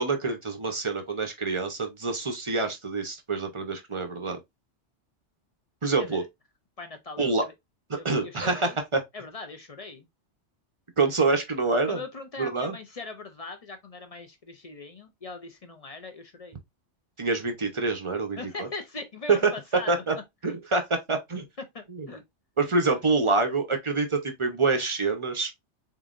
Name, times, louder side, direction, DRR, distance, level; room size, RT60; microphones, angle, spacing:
voice 1, 0.0-4.4 5.8-6.2 7.2-7.4 7.9-9.0 11.0-12.0 12.4-12.7 17.2-18.7 19.9-20.1 20.4-20.8 21.1-21.5 21.9-22.1 22.6-25.5, right 3 dB, 35° right, 0.6 m, -26 dB
voice 2, 6.8-7.5 8.0-8.8 9.1-10.1 11.8-16.6 18.4-20.0 20.4-20.6 21.7-22.2 22.8-23.0, left 3 dB, 45° left, 0.5 m, -40 dB
3.9 x 3.8 x 2.4 m
omnidirectional pair, 1.2 m